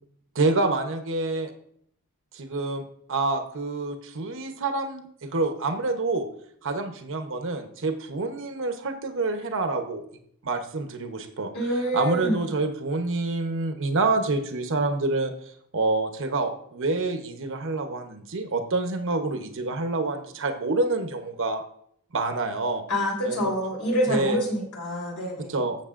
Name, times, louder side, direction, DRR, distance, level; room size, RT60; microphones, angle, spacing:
voice 1, 0.3-1.5 2.3-6.3 6.6-10.0 10.4-11.5 11.9-15.3 15.7-21.6 22.1-22.8 23.2-23.5 24.1-24.4 25.4-25.8, right 3 dB, 60° right, 6 dB, 0.9 m, -27 dB
voice 2, 11.5-12.5 22.9-25.6, equal, 80° left, -1 dB, 3.7 m, -27 dB
13.0 x 7.6 x 2.5 m, 0.68 s
head